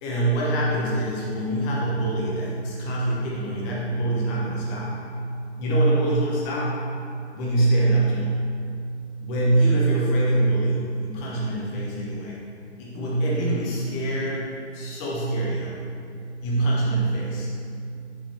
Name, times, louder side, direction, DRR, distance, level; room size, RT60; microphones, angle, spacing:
voice 1, 0.0-5.0 5.6-6.9 7.3-8.4 9.2-12.3 12.8-15.8 16.4-17.5, right 2 dB, 15° left, -6 dB, 1.0 m, -24 dB
9.2 x 3.9 x 3.3 m, 2.4 s
figure-of-eight pair, 135°, 34 cm